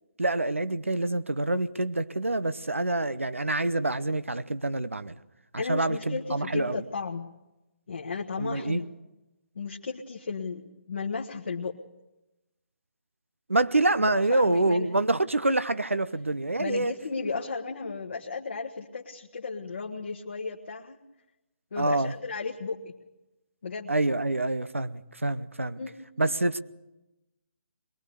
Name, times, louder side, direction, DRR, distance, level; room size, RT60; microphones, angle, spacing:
voice 1, 0.2-5.2 5.5-6.8 8.4-8.8 13.5-16.9 21.8-22.1 23.9-25.8 26.2-26.6, right 2 dB, 85° right, 14 dB, 0.8 m, -26 dB
voice 2, 5.6-7.3 7.9-8.9 9.5-10.6 10.9-11.8 14.0-14.9 16.6-21.0 21.7-22.9 23.6-23.9 25.8-26.0, left 4 dB, 60° left, 0 dB, 1.5 m, -34 dB
22.0 x 19.5 x 6.9 m, 1.0 s
figure-of-eight pair, 140°, 7 cm